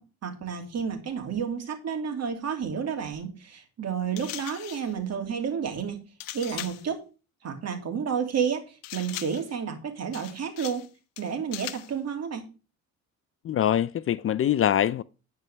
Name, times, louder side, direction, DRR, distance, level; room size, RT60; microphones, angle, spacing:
voice 1, 0.2-6.0 6.3-7.0 7.4-10.9 11.2-12.5, right 7 dB, 50° right, 2.8 m, -31 dB
sound 1, 4.2-4.9 6.2-6.9 8.8-9.5 10.1-10.9 11.2-11.9, left 16 dB, 85° left, 0.8 m, -39 dB
voice 2, 13.4-15.0, left 10 dB, 40° left, 0.5 m, -24 dB
10.5 x 4.7 x 6.8 m
supercardioid pair, 85°, 33 cm